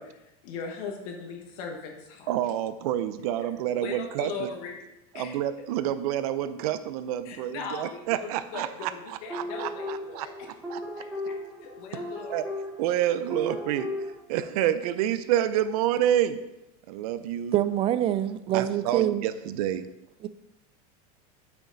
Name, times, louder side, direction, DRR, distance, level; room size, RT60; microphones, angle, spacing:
voice 1, 0.0-2.4 3.8-4.8 5.1-5.4 7.2-10.3 11.0-11.3 11.6-12.5, left 5 dB, 60° left, 2 dB, 1.4 m, -39 dB
voice 2, 2.3-4.5 5.2-10.3 10.7-10.8 12.3-12.4 12.8-13.9 14.3-16.4 16.9-17.5 18.5-19.9, right 11 dB, 65° right, 12 dB, 0.6 m, -28 dB
sound 1, 9.3-14.1, left 1 dB, 5° right, 2.1 m, -36 dB
voice 3, 17.5-19.3 20.2-20.3, right 12 dB, 30° right, 14 dB, 0.4 m, -25 dB
8.4 x 5.9 x 3.9 m, 0.92 s
supercardioid pair, 140°, 20 cm